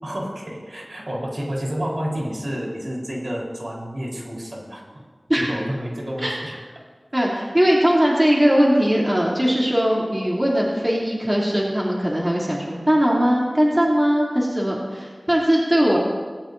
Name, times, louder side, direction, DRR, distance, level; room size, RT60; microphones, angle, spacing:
voice 1, 0.0-4.8 5.4-6.5, equal, 60° right, -3 dB, 4.0 m, -29 dB
voice 2, 7.1-16.0, equal, 25° right, -4 dB, 3.0 m, -20 dB
19.0 x 17.5 x 2.7 m, 1.5 s
wide cardioid pair, 55°, 0 cm